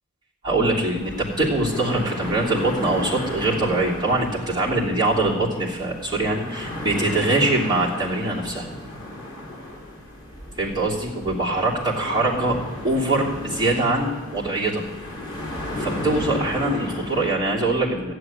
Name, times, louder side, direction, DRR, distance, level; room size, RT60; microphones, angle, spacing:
voice 1, 0.4-8.7 10.6-12.6 12.8-14.8 15.8-18.1, right 2 dB, 20° right, -6 dB, 3.0 m, -23 dB
sound 1, 0.9-17.3, left 1 dB, 20° left, 4.1 m, -34 dB
14.5 x 7.9 x 9.5 m, 1.2 s
head